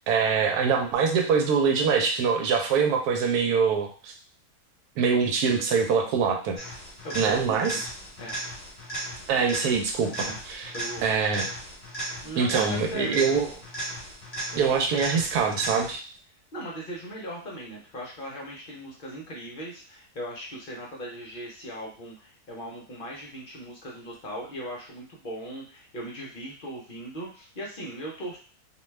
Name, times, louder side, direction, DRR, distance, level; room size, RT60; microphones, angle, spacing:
voice 1, 0.1-4.1 5.0-6.6 7.2-7.8 9.3-10.7 11.0-11.5 12.4-13.5 14.5-16.0, right 5 dB, 85° right, 3 dB, 1.1 m, -24 dB
sound 1, 6.6-16.2 24.1-24.2, right 1 dB, 30° left, 1.2 m, -36 dB
voice 2, 7.0-7.8 8.2-8.4 10.2-10.4 10.7-11.1 12.2-13.1 16.5-28.4, equal, 50° left, -2 dB, 0.6 m, -38 dB
2.6 x 2.2 x 3.1 m, 0.40 s
omnidirectional pair, 1.6 m